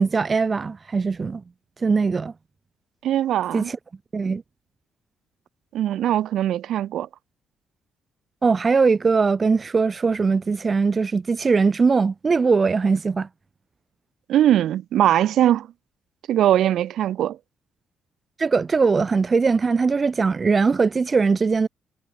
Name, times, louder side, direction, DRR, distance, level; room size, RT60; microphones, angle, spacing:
voice 1, 0.0-1.4 1.8-2.3 3.5-3.8 4.1-4.4 8.4-13.3 18.4-21.7, right 4 dB, 35° right, 4.2 m, -20 dB
voice 2, 3.0-3.7 5.7-7.1 14.3-15.7 16.3-17.4, right 11 dB, 75° right, 0.9 m, -20 dB
cardioid pair, 90°, 0 cm